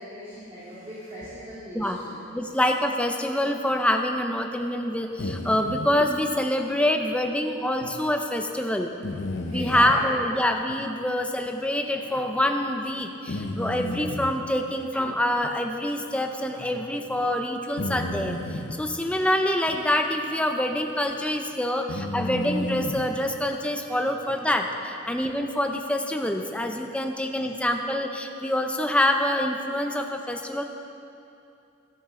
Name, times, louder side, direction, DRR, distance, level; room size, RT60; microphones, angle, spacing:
voice 1, 0.0-2.2 9.5-9.9 22.3-22.4, equal, 25° right, -12 dB, 2.7 m, -39 dB
voice 2, 2.3-8.9 9.5-30.6, left 1 dB, 5° left, 4 dB, 0.6 m, -26 dB
sound 1, 5.2-5.9 7.8-7.9 9.0-10.0 10.7-10.8 11.5-11.6 13.3-14.4 15.4-15.5 16.0-16.1 17.8-18.7 19.7-19.8 20.7-20.9 21.9-23.1, left 2 dB, 60° left, 0.8 m, -32 dB
13.5 x 12.0 x 3.8 m, 2.7 s
head